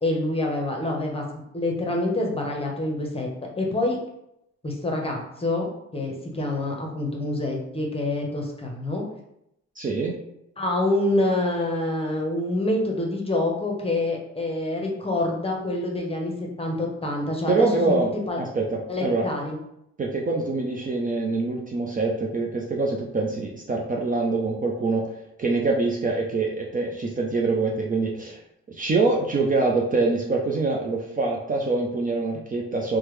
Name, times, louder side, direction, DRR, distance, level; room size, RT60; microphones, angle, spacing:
voice 1, 0.0-3.3 3.6-4.0 4.6-5.7 5.9-9.0 10.6-16.3 16.6-18.0 18.3-18.4 18.9-19.6, left 2 dB, 20° left, 0 dB, 0.8 m, -26 dB
voice 2, 9.8-10.2 17.5-19.3 20.0-25.1 25.4-28.4 28.7-33.0, right 3 dB, 30° right, 0 dB, 0.4 m, -25 dB
3.3 x 2.2 x 3.1 m, 0.80 s
cardioid pair, 90°, 30 cm